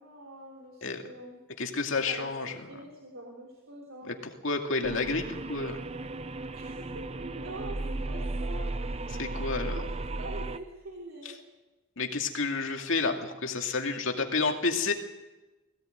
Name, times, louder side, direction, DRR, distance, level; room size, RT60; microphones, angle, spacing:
voice 1, 0.0-1.4 2.1-4.1 6.5-9.3 9.7-11.4, right 1 dB, 70° right, -1 dB, 3.5 m, -44 dB
voice 2, 1.6-2.6 4.1-5.8 9.2-9.8 12.0-14.9, left 4 dB, 65° left, 3 dB, 2.4 m, -30 dB
sound 1, 4.8-10.6, right 2 dB, 30° right, 0.7 m, -35 dB
21.0 x 17.0 x 9.2 m, 1.1 s
head